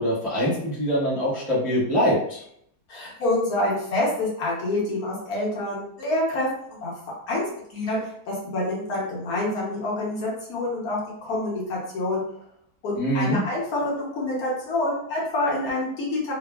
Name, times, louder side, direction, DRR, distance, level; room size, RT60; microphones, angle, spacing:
voice 1, 0.0-2.4 13.0-13.4, equal, ahead, -9 dB, 0.5 m, -23 dB
voice 2, 2.9-6.9 7.3-8.0 8.3-12.2 12.8-16.3, left 1 dB, 65° left, -4 dB, 1.4 m, -27 dB
3.3 x 2.0 x 2.2 m, 0.70 s
omnidirectional pair, 1.7 m